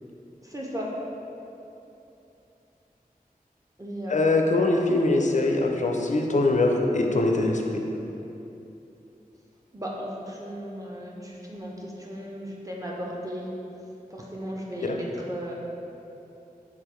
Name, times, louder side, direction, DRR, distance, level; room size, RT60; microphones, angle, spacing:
voice 1, 0.4-0.9 3.8-4.7 9.7-13.5 14.1-15.6, equal, 20° right, -3 dB, 0.5 m, -36 dB
voice 2, 4.1-7.6 14.8-15.0, left 2 dB, 55° left, 2 dB, 0.4 m, -22 dB
3.7 x 2.9 x 3.0 m, 2.9 s
wide cardioid pair, 50°, 15 cm